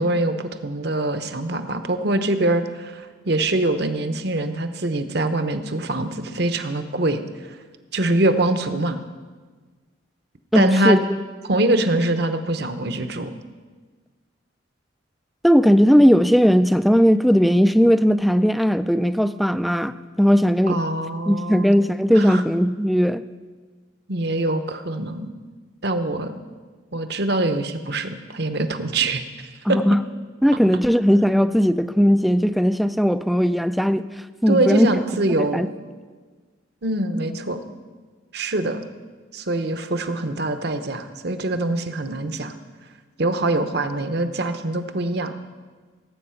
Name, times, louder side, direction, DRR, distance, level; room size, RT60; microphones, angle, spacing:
voice 1, 0.0-7.2 7.9-9.0 10.5-11.0 11.4-13.3 20.7-21.7 22.1-22.4 24.1-25.3 25.8-26.4 26.9-29.8 34.5-35.7 36.8-37.6 38.3-38.8 39.3-42.5 43.2-45.3, right 2 dB, 55° right, 9 dB, 0.9 m, -24 dB
voice 2, 10.5-11.0 15.4-20.8 21.3-23.2 29.7-30.0 30.4-34.1 34.4-34.9 35.5-35.7, equal, ahead, 12 dB, 0.3 m, -17 dB
17.5 x 8.6 x 5.7 m, 1.4 s
head